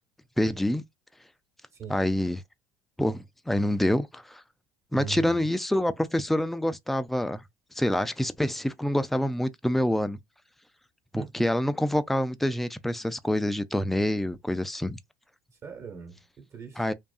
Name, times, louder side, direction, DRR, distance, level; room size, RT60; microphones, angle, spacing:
voice 1, 0.4-0.8 1.9-2.4 3.0-4.4 4.9-7.4 7.8-10.2 11.1-15.0 16.8-16.9, left 1 dB, 5° left, 0.3 m, -26 dB
voice 2, 1.7-2.0 4.9-5.5 11.1-11.5 15.6-16.8, right 6 dB, 35° right, 1.1 m, -40 dB
2.6 x 2.3 x 2.3 m
supercardioid pair, 90°, 8 cm